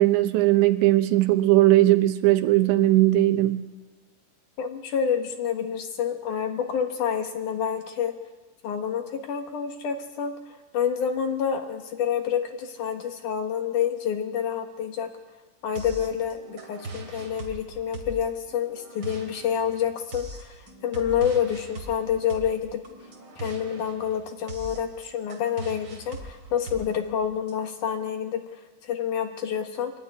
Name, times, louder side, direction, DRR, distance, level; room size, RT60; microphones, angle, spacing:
voice 1, 0.0-3.7, right 16 dB, 80° right, 9 dB, 3.2 m, -19 dB
voice 2, 4.6-8.1 8.6-15.1 15.6-22.8 23.4-28.4 28.8-29.9, left 8 dB, 65° left, 5 dB, 2.1 m, -28 dB
sound 1, 15.8-27.5, right 2 dB, 30° right, 2.3 m, -41 dB
24.0 x 12.5 x 9.6 m, 1.2 s
omnidirectional pair, 5.3 m